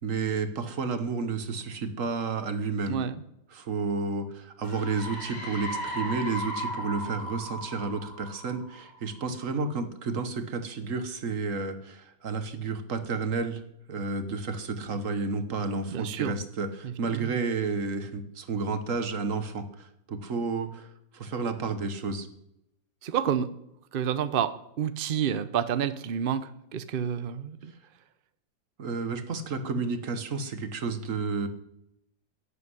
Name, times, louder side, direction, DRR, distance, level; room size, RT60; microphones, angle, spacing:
voice 1, 0.0-3.0 3.5-13.6 13.9-22.3 28.8-31.5, right 4 dB, 45° right, 9 dB, 1.5 m, -31 dB
voice 2, 2.9-3.2 15.9-16.4 16.8-17.3 23.0-23.5 23.9-27.7, right 8 dB, 90° right, 13 dB, 0.4 m, -29 dB
sound 1, 4.6-9.2, equal, 60° left, 5.4 m, -36 dB
11.0 x 8.4 x 9.8 m, 0.80 s
omnidirectional pair, 2.0 m